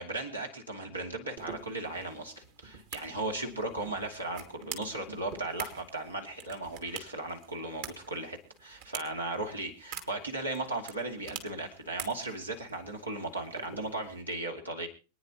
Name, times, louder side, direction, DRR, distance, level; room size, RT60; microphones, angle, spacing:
voice 1, 0.0-14.9, right 2 dB, 80° right, 2 dB, 2.6 m, -36 dB
sound 1, 1.4-14.2, right 7 dB, 50° right, 2.2 m, -47 dB
26.5 x 9.8 x 2.9 m, 0.34 s
figure-of-eight pair, 90°, 0 cm